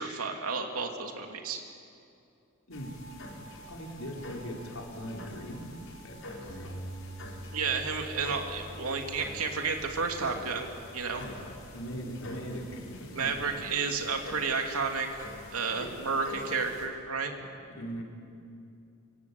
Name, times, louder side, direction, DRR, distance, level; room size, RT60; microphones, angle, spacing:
voice 1, 0.0-1.6 7.5-10.7 10.9-11.2 13.1-15.1 15.5-17.3, right 4 dB, 90° right, 3 dB, 2.9 m, -31 dB
sound 1, 2.7-16.9, left 1 dB, 65° left, 5.2 m, -47 dB
voice 2, 3.7-5.7 6.0-6.8 7.8-7.9 11.1-13.5 15.8-15.9 17.8-18.0, equal, 80° left, 0 dB, 4.8 m, -40 dB
Bass guitar, 6.5-12.7, right 1 dB, 50° left, 4.3 m, -47 dB
25.5 x 25.0 x 8.6 m, 2.5 s
head